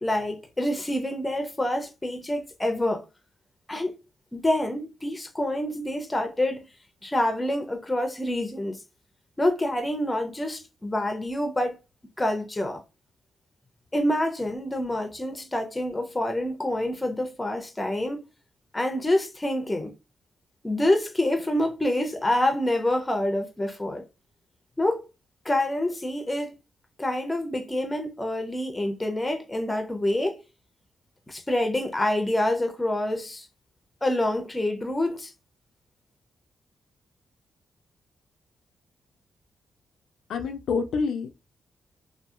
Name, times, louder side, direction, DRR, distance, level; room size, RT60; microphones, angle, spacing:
voice 1, 0.0-3.0 3.7-4.0 4.3-6.7 7.0-8.8 9.4-11.8 12.2-12.8 13.9-18.2 18.7-19.9 20.6-24.0 24.8-25.1 25.5-26.5 27.0-30.4 31.3-33.5 34.0-35.3, left 1 dB, 15° left, 0.5 m, -27 dB
voice 2, 40.3-41.3, left 5 dB, 85° left, 0.3 m, -27 dB
2.7 x 2.4 x 2.3 m
cardioid pair, 100°, 0 cm